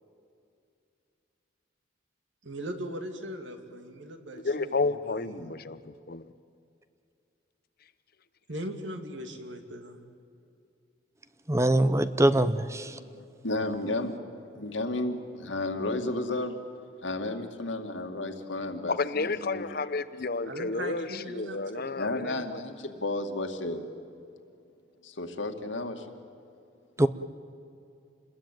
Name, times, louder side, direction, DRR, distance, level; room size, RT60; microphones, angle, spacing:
voice 1, 2.4-4.8 5.1-5.6 8.5-10.1 20.4-22.1, right 1 dB, 75° right, 5 dB, 2.7 m, -39 dB
voice 2, 4.4-6.3 18.9-22.6, left 3 dB, 55° left, 13 dB, 0.9 m, -31 dB
voice 3, 11.5-13.0 27.0-27.1, right 1 dB, 15° right, 13 dB, 0.8 m, -23 dB
voice 4, 13.0-14.1 14.5-16.5 17.0-19.6 22.0-23.8 25.0-26.1, left 2 dB, 85° left, 5 dB, 2.2 m, -32 dB
28.0 x 21.0 x 9.2 m, 2.5 s
head